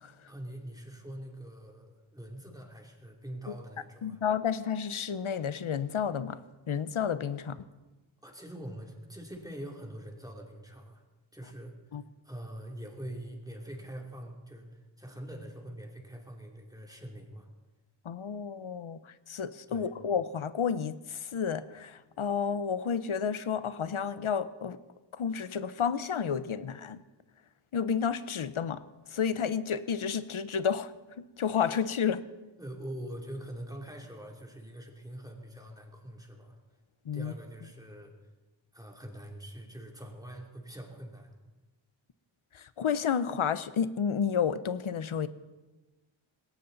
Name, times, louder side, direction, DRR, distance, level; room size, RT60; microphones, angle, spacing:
voice 1, 0.3-4.2 8.2-11.0 11.3-17.5 19.7-19.9 32.6-36.6 37.1-38.1 38.7-41.3, right 1 dB, 5° right, 1 dB, 3.0 m, -44 dB
voice 2, 4.0-6.4 6.7-7.6 11.9-12.0 18.0-19.0 19.3-24.8 25.2-27.0 27.7-28.8 29.1-30.9 31.4-32.2 37.1-37.3 42.5-45.3, left 7 dB, 80° left, 14 dB, 0.9 m, -31 dB
20.0 x 17.5 x 4.0 m, 1.1 s
wide cardioid pair, 90°, 49 cm